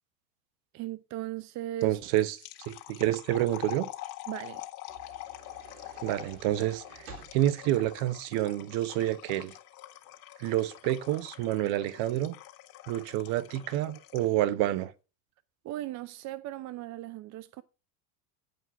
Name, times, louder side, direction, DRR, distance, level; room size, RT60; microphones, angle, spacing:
voice 1, 0.7-2.0 4.3-4.6 15.6-17.6, right 14 dB, 40° right, 0.6 m, -37 dB
sound 1, 1.8-14.4, left 16 dB, 55° left, 1.8 m, -45 dB
voice 2, 1.8-2.4 2.7-3.9 6.0-9.5 10.4-12.4 12.9-14.9, right 14 dB, 60° right, 1.1 m, -28 dB
sound 2, 4.9-8.7, right 5 dB, 80° right, 3.7 m, -53 dB
9.8 x 5.1 x 5.4 m
hypercardioid pair, 100°, 44 cm